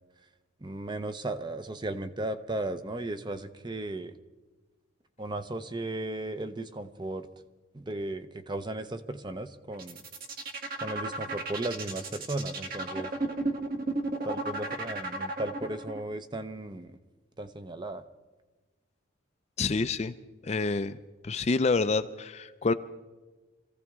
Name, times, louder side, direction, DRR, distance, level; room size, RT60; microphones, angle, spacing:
voice 1, 0.6-4.1 5.2-7.3 7.7-10.0 10.8-13.1 14.2-17.0 17.4-18.0, right 2 dB, 20° right, 10 dB, 0.6 m, -35 dB
sound 1, 9.7-16.0, right 2 dB, 45° right, 1.6 m, -33 dB
voice 2, 19.6-20.1 20.4-21.0 21.2-22.7, left 4 dB, 30° left, 11 dB, 0.4 m, -27 dB
26.0 x 15.5 x 3.6 m, 1.2 s
head